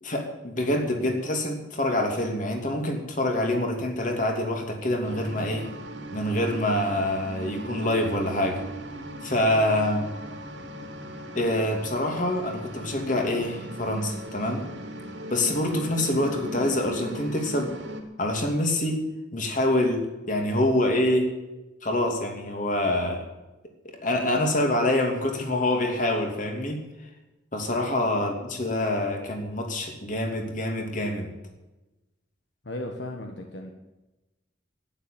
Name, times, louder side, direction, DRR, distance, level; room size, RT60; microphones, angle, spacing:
voice 1, 0.0-5.7 6.1-8.6 9.2-10.1 11.3-14.7 15.3-17.7 18.2-19.0 19.3-21.3 21.8-23.2 24.0-26.9 27.5-31.3, left 1 dB, 45° left, 3 dB, 2.9 m, -26 dB
sound 1, 5.0-18.0, right 1 dB, 80° right, 2.8 m, -38 dB
voice 2, 32.6-33.7, left 1 dB, 75° left, 3 dB, 1.5 m, -36 dB
12.0 x 10.5 x 9.1 m, 1.1 s
head